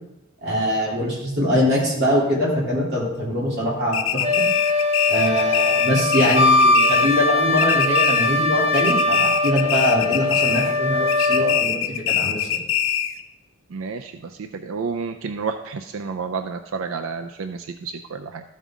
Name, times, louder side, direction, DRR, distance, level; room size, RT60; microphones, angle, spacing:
voice 1, 0.4-4.5 5.1-12.6, equal, 55° right, -5 dB, 2.8 m, -23 dB
sound 1, 3.9-7.3 7.6-8.5 8.7-10.8 11.1-13.2, left 10 dB, 70° left, 0.5 m, -24 dB
Wind instrument woodwind instrument, 4.2-11.6, left 2 dB, 30° right, 0.7 m, -21 dB
voice 2, 13.7-18.4, right 5 dB, 80° right, 7 dB, 0.4 m, -30 dB
13.0 x 5.4 x 3.6 m, 0.91 s
head